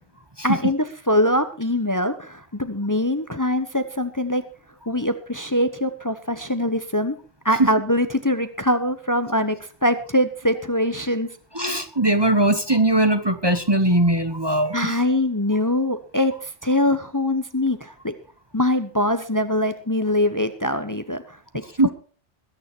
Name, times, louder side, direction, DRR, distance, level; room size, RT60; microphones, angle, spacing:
voice 1, 0.4-4.4 4.9-7.2 7.4-11.3 14.7-18.1 18.5-21.4 21.8-21.9, left 1 dB, 15° left, 10 dB, 1.0 m, -23 dB
voice 2, 11.5-14.9 21.8-21.9, right 1 dB, 25° right, 8 dB, 1.1 m, -20 dB
21.0 x 9.4 x 4.6 m, 0.38 s
omnidirectional pair, 1.2 m